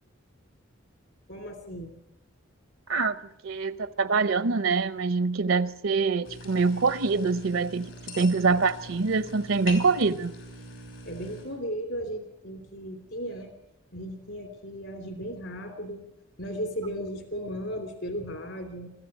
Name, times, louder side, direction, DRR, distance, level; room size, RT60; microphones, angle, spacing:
voice 1, 1.3-1.9 8.5-8.6 11.0-13.5 13.9-16.1 16.4-18.9, equal, 65° left, 3.1 m, -36 dB
voice 2, 3.4-7.9 8.1-10.3, right 4 dB, 75° right, 0.7 m, -25 dB
sound 1, 6.2-11.4, left 2 dB, 80° left, 6.7 m, -43 dB
23.0 x 14.0 x 9.0 m
head